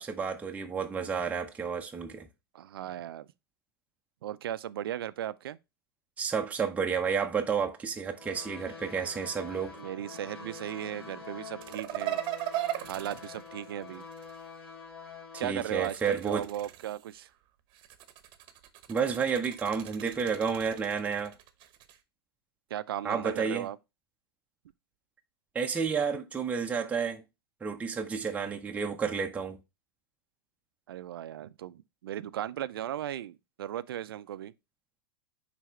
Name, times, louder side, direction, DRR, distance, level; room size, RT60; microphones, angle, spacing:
voice 1, 0.0-2.3 6.2-9.8 15.4-16.5 18.9-21.3 23.0-23.7 25.5-27.2 27.6-29.6, right 6 dB, 10° right, 0.7 m, -31 dB
voice 2, 2.5-3.3 4.2-5.6 9.8-12.2 12.8-14.0 15.4-17.3 22.7-23.8 30.9-34.5, right 11 dB, 70° right, 0.4 m, -37 dB
sound 1, 8.2-15.5, left 5 dB, 85° left, 2.1 m, -46 dB
sound 2, 11.6-14.4 15.6-17.2 17.7-22.0, right 13 dB, 40° right, 0.9 m, -38 dB
9.0 x 3.4 x 3.1 m
hypercardioid pair, 100°, 13 cm